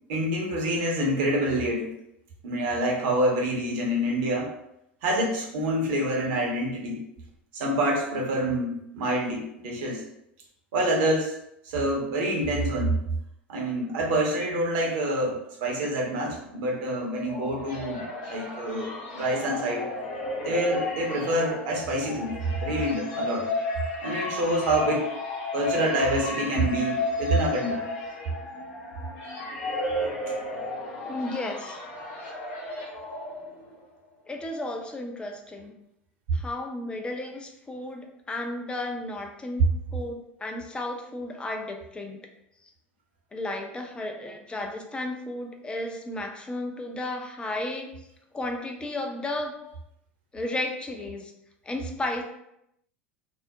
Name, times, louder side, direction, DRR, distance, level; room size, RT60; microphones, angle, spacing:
voice 1, 0.1-1.9 2.4-4.5 5.0-7.0 7.5-10.0 10.7-11.3 11.6-13.0 13.5-18.9 19.1-19.8 20.4-22.3 22.6-23.5 24.0-25.1 25.5-27.9 30.3-30.4, right 1 dB, 55° right, -1 dB, 0.7 m, -27 dB
sound 1, 16.8-33.8, left 2 dB, 50° left, 0.7 m, -33 dB
voice 2, 31.1-31.8 34.3-35.7 36.3-39.6 39.9-42.2 43.3-47.9 48.3-49.5 50.3-51.3 51.7-52.2, left 2 dB, 15° left, 3 dB, 0.4 m, -33 dB
2.3 x 2.0 x 2.7 m, 0.79 s
figure-of-eight pair, 80°, 7 cm